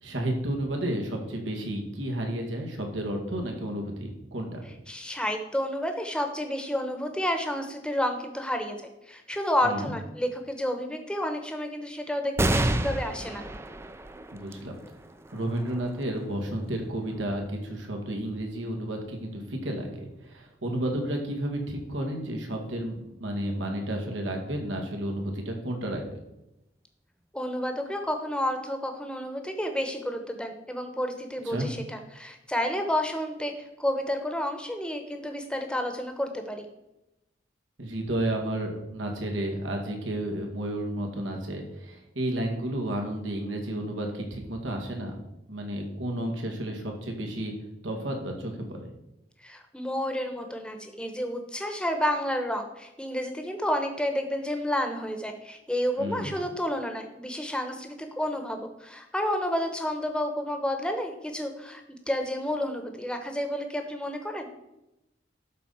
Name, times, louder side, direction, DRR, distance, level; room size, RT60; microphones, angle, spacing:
voice 1, 0.0-4.7 9.6-9.9 14.3-14.7 15.3-26.2 31.5-31.7 37.8-45.2 45.5-47.5 47.8-48.9 56.0-56.3, right 1 dB, 90° right, 2 dB, 1.9 m, -32 dB
voice 2, 4.9-8.8 9.1-13.4 27.3-33.5 33.8-36.6 49.4-64.5, left 1 dB, 5° left, 5 dB, 1.0 m, -30 dB
sound 1, 12.4-19.3 19.9-20.0 21.1-21.7, right 1 dB, 15° right, 0.4 m, -32 dB
11.5 x 4.1 x 5.6 m, 0.91 s
head